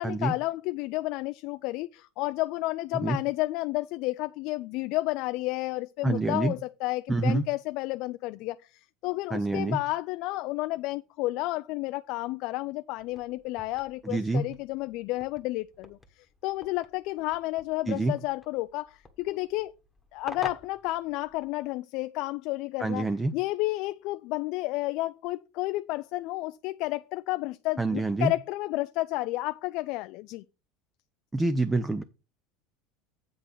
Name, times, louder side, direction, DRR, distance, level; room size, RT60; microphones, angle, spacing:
voice 1, 0.0-19.7 20.1-30.4, left 19 dB, 60° left, 0.3 m, -31 dB
voice 2, 6.0-6.5 7.1-7.4 9.3-9.8 14.0-14.5 17.9-18.1 22.8-23.3 27.8-28.3 31.3-32.0, right 2 dB, 10° right, 0.6 m, -26 dB
sound 1, 13.0-21.7, left 3 dB, 10° left, 1.3 m, -48 dB
8.4 x 3.9 x 6.6 m
supercardioid pair, 125°, 0 cm